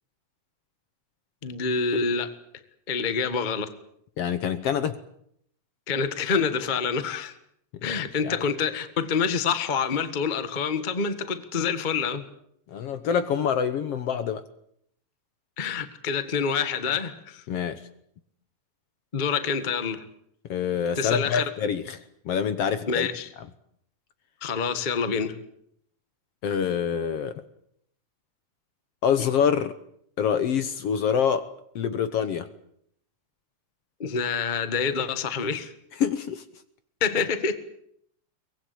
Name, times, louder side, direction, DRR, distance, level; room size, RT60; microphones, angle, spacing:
voice 1, 1.4-2.3 2.9-3.7 5.9-7.3 7.8-12.2 15.6-17.4 19.1-20.0 21.0-21.4 22.9-23.3 24.4-25.3 34.0-35.7 37.0-37.5, left 5 dB, 25° left, 1.1 m, -27 dB
voice 2, 4.2-5.0 7.8-8.4 12.7-14.4 17.5-17.8 20.5-22.0 22.3-23.1 26.4-27.4 29.0-29.7 30.2-31.5 31.8-32.5 36.0-36.4, left 7 dB, 60° left, 1.9 m, -26 dB
23.5 x 20.0 x 8.5 m
omnidirectional pair, 3.4 m